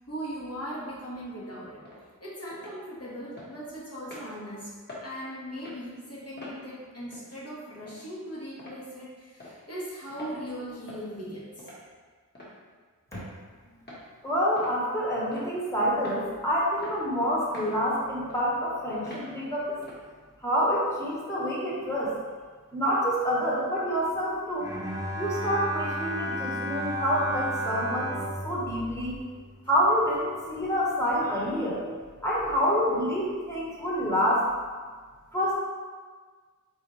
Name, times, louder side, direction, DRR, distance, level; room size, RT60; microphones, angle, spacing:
voice 1, 0.0-1.8 2.2-4.8 5.0-11.7, equal, 50° left, -7 dB, 1.4 m, -39 dB
sound 1, 1.8-2.0 2.5-2.8 3.4-3.5 4.1-4.3 4.9-5.1 5.5-5.8 6.4-6.6 7.1-7.3 7.9-8.0 8.6-8.8 9.4-9.6 10.1-10.3 10.9-11.1 11.6-11.8 12.3-12.5 13.1-13.3 13.9-14.0 14.6-14.8 15.3-15.6 16.0-16.2 16.8-17.0 17.5-17.8 18.3-18.4 19.1-19.3 19.8-20.0, left 1 dB, 30° left, 1.3 m, -44 dB
voice 2, 14.2-19.8 20.4-22.2 22.7-24.7 25.2-28.2 28.4-29.2 29.7-31.8 32.2-34.5 35.3-35.5, equal, 10° left, -7 dB, 1.2 m, -27 dB
Bowed string instrument, 24.6-29.9, equal, 10° right, 0.8 m, -33 dB
4.0 x 3.6 x 3.1 m, 1.5 s
wide cardioid pair, 65°, 32 cm